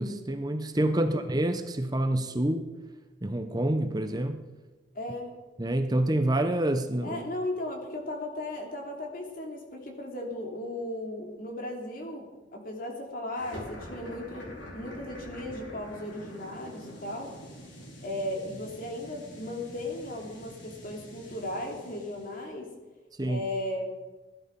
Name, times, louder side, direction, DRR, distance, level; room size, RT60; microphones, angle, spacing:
voice 1, 0.0-2.7 3.2-4.4 5.6-7.2 23.2-23.4, right 1 dB, 20° right, 7 dB, 0.8 m, -27 dB
voice 2, 4.9-5.4 7.0-17.3 18.0-22.7 23.3-23.8, left 1 dB, 50° left, 1 dB, 2.9 m, -36 dB
sound 1, 13.3-22.5, equal, 90° left, 4.1 m, -46 dB
17.0 x 11.0 x 5.3 m, 1.2 s
head